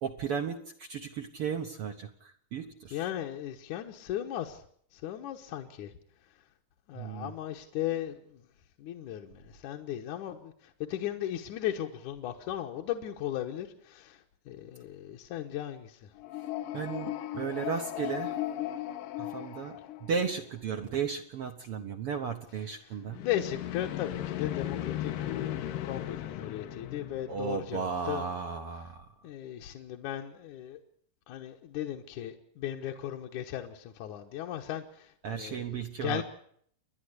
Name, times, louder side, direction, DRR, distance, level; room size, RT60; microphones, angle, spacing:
voice 1, 0.0-3.1 6.9-7.3 16.7-18.4 19.2-23.2 27.3-29.0 35.2-36.2, right 6 dB, 60° right, 5 dB, 1.6 m, -35 dB
voice 2, 2.9-4.6 4.9-5.9 6.9-8.4 8.8-16.1 23.2-25.5 25.8-28.2 29.2-30.8 31.3-36.2, left 12 dB, 70° left, 2 dB, 2.4 m, -37 dB
sound 1, 16.2-20.5 23.1-28.1, left 13 dB, 85° left, 2.7 m, -37 dB
29.5 x 11.0 x 8.1 m, 0.63 s
omnidirectional pair, 3.9 m